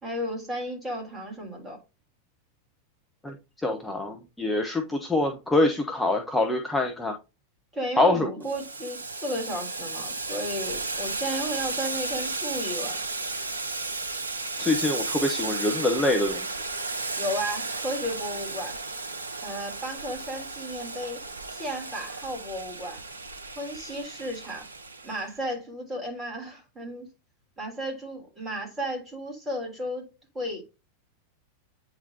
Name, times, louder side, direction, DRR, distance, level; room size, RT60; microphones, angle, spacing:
voice 1, 0.0-1.8 7.7-13.0 17.2-18.8 19.4-23.0 23.6-24.6 25.0-27.1 27.6-30.6, equal, 15° right, 3.3 m, -34 dB
voice 2, 3.2-7.1 8.0-8.3 14.6-16.5, left 2 dB, 5° left, 1.0 m, -25 dB
Boiling, 8.4-25.2, right 3 dB, 75° right, 0.7 m, -34 dB
8.8 x 4.0 x 2.8 m
figure-of-eight pair, 90°, 0 cm